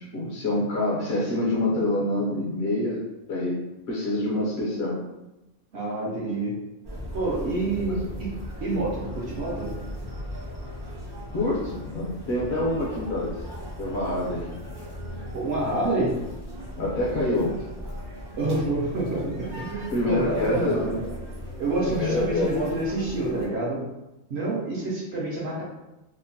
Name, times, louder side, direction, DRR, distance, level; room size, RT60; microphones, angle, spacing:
voice 1, 0.1-3.0 3.3-3.6 3.9-5.0 7.7-8.3 11.3-13.4 13.8-14.6 16.8-17.5 19.9-20.9 21.8-22.5, left 1 dB, 60° left, -5 dB, 0.8 m, -26 dB
voice 2, 5.7-6.5 7.1-8.3 8.6-9.7 15.3-16.1 18.4-21.1 21.6-23.8 24.3-25.6, right 2 dB, 60° right, -5 dB, 0.7 m, -27 dB
sound 1, 6.8-23.5, equal, 40° right, 0.3 m, -38 dB
2.8 x 2.1 x 2.6 m, 1.0 s
omnidirectional pair, 1.5 m